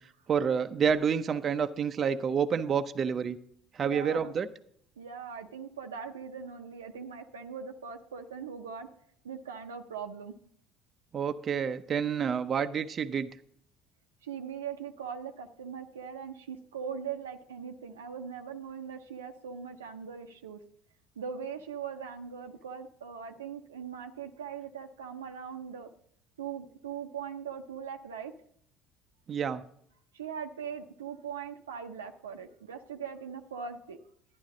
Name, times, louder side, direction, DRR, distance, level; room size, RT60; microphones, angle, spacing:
voice 1, 0.3-3.4 3.7-4.5 11.1-13.3 29.3-29.6, right 7 dB, 40° right, 8 dB, 0.6 m, -28 dB
voice 2, 3.8-4.3 5.0-8.9 9.2-10.3 14.2-20.6 21.2-25.9 26.4-28.3 30.1-34.0, right 7 dB, 85° right, 5 dB, 0.7 m, -40 dB
11.5 x 9.9 x 3.8 m, 0.66 s
hypercardioid pair, 60°, 0 cm